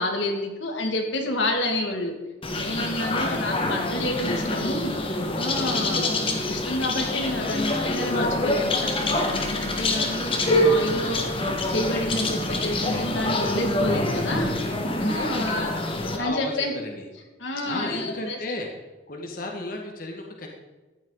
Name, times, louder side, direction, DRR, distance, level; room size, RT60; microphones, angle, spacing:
voice 1, 0.0-2.1 2.5-5.0 5.4-6.1 6.5-11.2 11.7-14.5 15.0-15.7 16.2-16.7 17.4-18.4, left 1 dB, 85° left, 2 dB, 2.5 m, -29 dB
sound 1, 2.4-16.2, left 1 dB, 30° left, 1.7 m, -26 dB
voice 2, 3.0-3.4 15.2-15.8 16.1-17.1 17.6-18.7 19.1-20.5, left 2 dB, 50° left, 1 dB, 2.0 m, -34 dB
14.5 x 11.0 x 4.1 m, 1.2 s
head